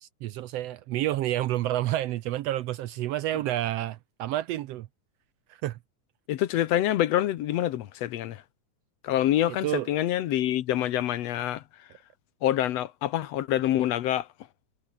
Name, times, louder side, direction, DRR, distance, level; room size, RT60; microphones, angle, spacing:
voice 1, 0.0-4.9 5.5-5.8 9.5-9.9, right 13 dB, 75° right, 1.6 m, -29 dB
voice 2, 6.3-8.4 9.0-11.6 12.4-14.3, left 12 dB, 70° left, 1.9 m, -26 dB
omnidirectional pair, 3.4 m